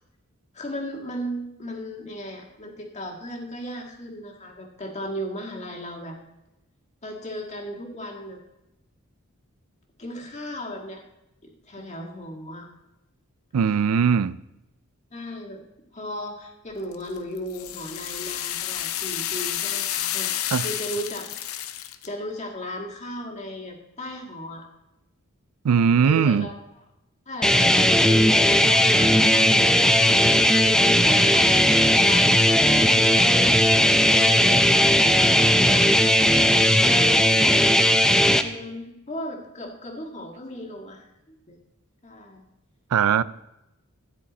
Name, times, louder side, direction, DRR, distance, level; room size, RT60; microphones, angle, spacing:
voice 1, 0.5-6.2 7.0-8.4 10.0-11.0 11.4-12.7 15.1-15.6 15.9-20.3 20.6-21.3 22.0-24.7 26.0-26.5 27.2-41.6 42.0-42.4, equal, 30° left, 1.7 m, -36 dB
voice 2, 13.5-14.4 20.5-20.7 25.6-26.5 42.9-43.2, right 7 dB, 80° right, 0.4 m, -20 dB
sound 1, 16.9-22.1, left 11 dB, 70° left, 0.6 m, -30 dB
sound 2, 27.4-38.4, equal, 5° left, 0.4 m, -17 dB
13.5 x 9.7 x 4.1 m
head